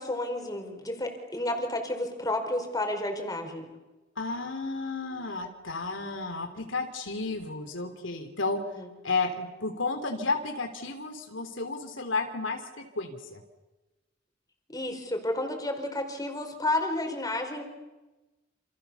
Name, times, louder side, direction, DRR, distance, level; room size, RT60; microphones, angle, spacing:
voice 1, 0.0-3.7 8.8-8.9 14.7-17.6, left 1 dB, 20° left, 4 dB, 4.9 m, -31 dB
voice 2, 4.2-8.6 9.0-13.4, left 3 dB, 75° left, 5 dB, 3.3 m, -32 dB
29.0 x 28.5 x 7.1 m, 1.1 s
head